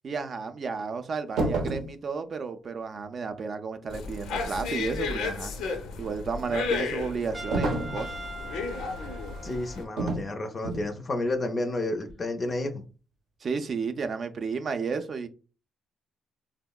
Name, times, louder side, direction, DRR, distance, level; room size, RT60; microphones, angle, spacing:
voice 1, 0.0-5.5 6.0-8.1 13.4-15.3, right 5 dB, 50° right, 0.4 m, -32 dB
sound 1, 1.4-1.9 7.5-8.0 10.0-10.3 10.6-10.9, right 2 dB, 80° right, 0.7 m, -28 dB
sound 2, 3.9-9.8, left 4 dB, 85° left, 0.5 m, -33 dB
Trumpet, 7.3-10.0, right 2 dB, 20° right, 0.7 m, -42 dB
voice 2, 9.4-12.8, left 2 dB, 35° left, 0.4 m, -31 dB
3.5 x 2.0 x 2.2 m
cardioid pair, 90°, 0 cm